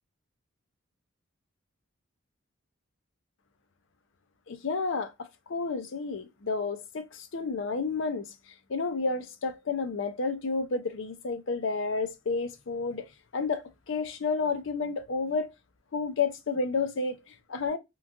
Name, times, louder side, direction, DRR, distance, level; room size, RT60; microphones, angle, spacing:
voice 1, 4.5-8.3 8.7-13.1 13.3-15.5 15.9-17.8, left 4 dB, 65° left, 0.5 m, -31 dB
3.0 x 2.3 x 2.5 m
head